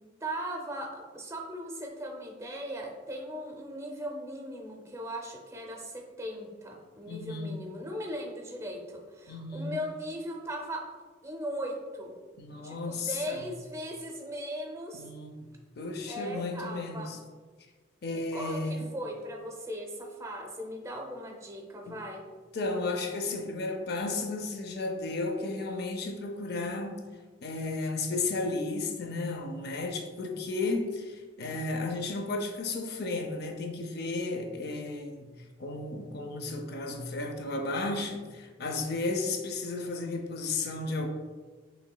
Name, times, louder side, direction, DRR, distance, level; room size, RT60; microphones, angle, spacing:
voice 1, 0.2-10.9 11.2-12.1 12.6-15.0 16.1-17.1 18.1-22.2, equal, 15° right, 2 dB, 0.5 m, -38 dB
voice 2, 7.1-7.6 9.3-9.8 12.4-13.4 14.9-15.5 15.8-17.2 18.0-18.9 21.9-22.0 22.5-27.0 27.4-35.3 35.6-41.1, left 3 dB, 55° left, 3 dB, 0.5 m, -33 dB
5.8 x 3.2 x 2.2 m, 1.4 s
head